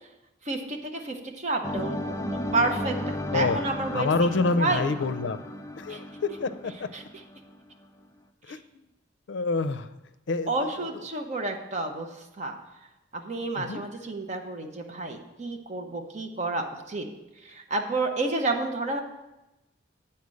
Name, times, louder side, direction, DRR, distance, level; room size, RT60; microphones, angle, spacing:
voice 1, 0.5-0.8 1.0-2.1 2.5-4.1 4.6-4.9 5.9-6.0 6.9-7.0 10.5-12.1 12.4-12.6 13.1-17.0 17.4-19.0, right 2 dB, 40° right, 3 dB, 0.9 m, -30 dB
sound 1, 1.6-7.6, left 1 dB, 15° left, 0.4 m, -34 dB
voice 2, 3.9-5.4 5.8-6.7 8.5-8.6 9.3-9.9 10.3-10.9 13.6-13.8, left 3 dB, 75° left, 11 dB, 0.5 m, -27 dB
8.4 x 4.3 x 6.3 m, 0.97 s
head